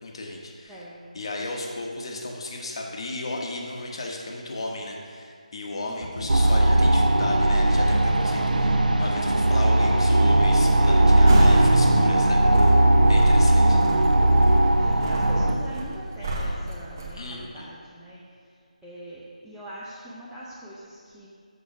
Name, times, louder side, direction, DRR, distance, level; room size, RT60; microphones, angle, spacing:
voice 1, 0.0-0.8 1.1-12.8 13.1-13.8 17.1-17.7, left 2 dB, 40° left, 0 dB, 1.1 m, -35 dB
voice 2, 0.7-1.1 5.8-6.0 14.8-18.2 18.8-21.3, right 1 dB, ahead, -10 dB, 0.5 m, -42 dB
sound 1, 6.0-7.3 8.1-12.1 12.9-14.5 15.3-15.6, left 1 dB, 80° left, 1.5 m, -34 dB
sound 2, 6.3-15.5, right 1 dB, 80° right, 0.7 m, -18 dB
sound 3, 11.3-11.8 12.2-17.1, right 1 dB, 25° right, 1.0 m, -31 dB
6.7 x 6.7 x 5.9 m, 2.2 s
figure-of-eight pair, 170°, 4 cm